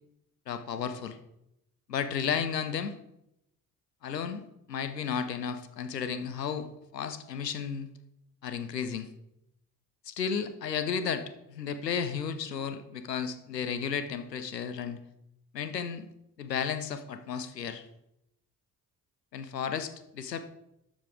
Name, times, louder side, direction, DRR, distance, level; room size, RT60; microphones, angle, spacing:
voice 1, 0.5-1.2 1.9-2.9 4.0-4.4 4.7-7.9 8.4-9.1 10.0-15.0 15.5-16.1 16.4-17.9 19.3-20.5, left 7 dB, 90° left, 10 dB, 0.6 m, -33 dB
12.5 x 7.1 x 3.4 m, 0.83 s
figure-of-eight pair, 40°, 48 cm